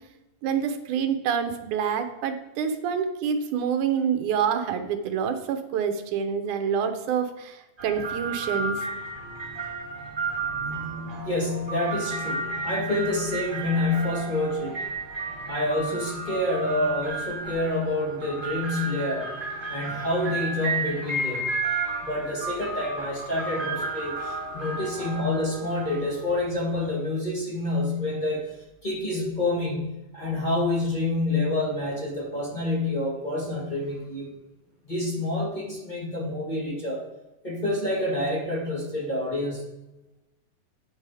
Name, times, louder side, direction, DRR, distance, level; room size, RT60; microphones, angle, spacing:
voice 1, 0.4-8.9, right 7 dB, 80° right, 7 dB, 2.3 m, -27 dB
sound 1, 7.8-26.9, right 3 dB, 10° right, 2.9 m, -33 dB
voice 2, 11.2-14.8 15.5-19.3 19.7-21.5 22.0-28.4 28.8-34.3 34.8-37.0 37.4-39.6, left 2 dB, 20° left, -3 dB, 1.4 m, -28 dB
9.0 x 7.3 x 4.8 m, 0.99 s
omnidirectional pair, 3.5 m